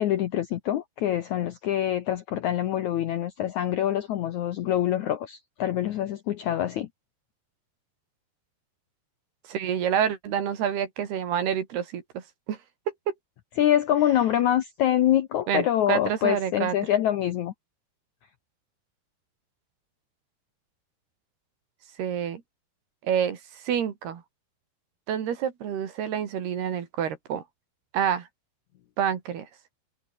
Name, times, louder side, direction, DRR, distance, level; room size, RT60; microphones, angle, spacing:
voice 1, 0.0-6.9 13.6-17.5, left 11 dB, 75° left, 1.7 m, -25 dB
voice 2, 9.5-12.6 12.9-13.1 15.5-16.8 22.0-22.4 23.0-24.2 25.1-27.4 27.9-28.3 29.0-29.5, right 8 dB, 75° right, 4.5 m, -28 dB
omnidirectional pair, 4.7 m